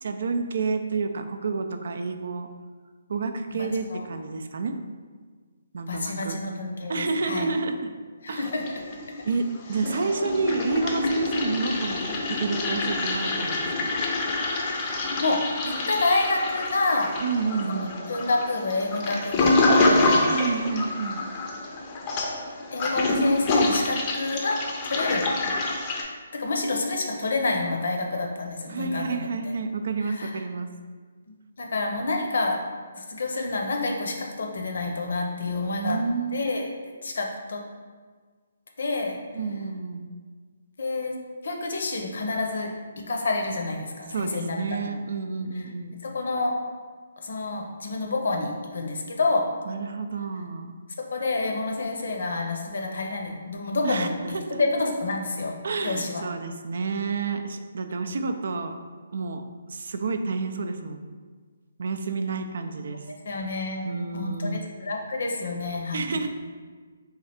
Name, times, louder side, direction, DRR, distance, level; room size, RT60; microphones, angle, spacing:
voice 1, 0.0-2.5 3.1-4.8 5.7-6.4 6.9-7.9 8.3-8.5 9.2-13.9 17.2-18.0 20.3-21.2 28.7-30.7 35.7-36.5 39.3-40.1 44.1-46.0 49.6-50.7 53.8-54.7 55.6-58.7 59.1-61.0 61.8-63.1 63.8-64.6 65.9-66.3, right 4 dB, 65° right, 7 dB, 0.3 m, -29 dB
voice 2, 3.6-4.0 5.9-7.5 8.2-8.6 14.7-15.4 15.6-17.1 17.8-17.9 18.1-20.3 22.7-24.6 24.8-25.3 26.3-29.3 30.2-30.3 31.6-32.6 32.9-36.0 36.3-36.7 37.0-37.6 38.8-39.2 40.8-41.1 41.4-42.7 43.1-44.6 46.0-46.5 47.2-49.5 51.0-54.1 54.5-55.6 55.8-56.2 63.2-63.8 64.1-66.0, left 3 dB, 70° left, 1 dB, 0.6 m, -28 dB
Toilet flush, 8.4-9.3 9.6-26.0, left 2 dB, 30° left, 0.5 m, -26 dB
3.2 x 2.4 x 4.2 m, 1.5 s
hypercardioid pair, 150°, 0 cm